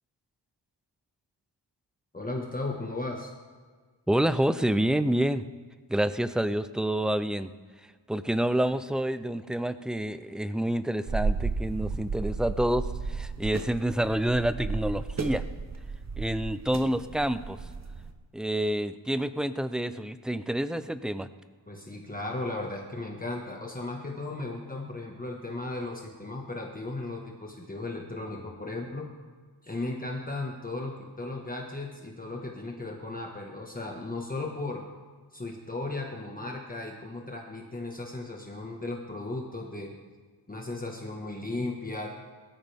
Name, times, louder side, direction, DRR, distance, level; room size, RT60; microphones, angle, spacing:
voice 1, 2.1-3.3 21.7-29.1 29.6-34.8 35.3-39.9 40.5-42.1, left 2 dB, 20° left, 0 dB, 1.5 m, -36 dB
voice 2, 4.1-5.4 5.9-7.5 8.1-15.4 16.2-17.6 18.3-21.3, right 1 dB, ahead, 12 dB, 0.4 m, -28 dB
Queneau Ambiance Hache, 11.1-18.1, right 4 dB, 40° right, 1.0 m, -33 dB
21.5 x 13.5 x 3.5 m, 1.5 s
wide cardioid pair, 125°, 43 cm